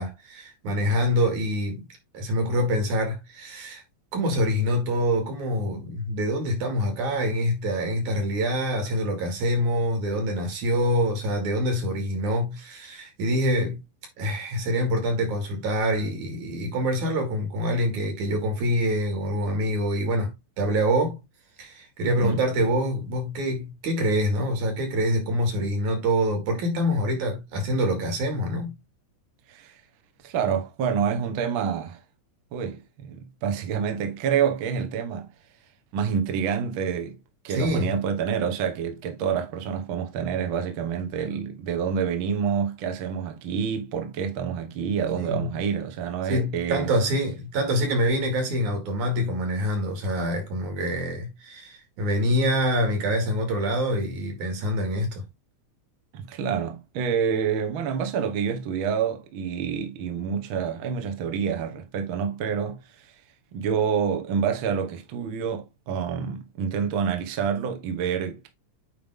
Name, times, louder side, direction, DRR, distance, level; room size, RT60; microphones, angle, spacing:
voice 1, 0.0-1.9 2.1-3.8 4.1-13.8 14.2-21.2 21.6-28.8 37.5-38.0 45.2-45.5 46.3-55.2, equal, 85° right, 3.7 m, -25 dB
voice 2, 22.0-22.4 29.5-29.8 30.2-32.0 32.5-35.3 35.9-37.2 37.4-46.9 56.1-63.1 63.5-68.5, right 7 dB, 55° right, 1.6 m, -27 dB
8.9 x 3.3 x 3.7 m
omnidirectional pair, 3.4 m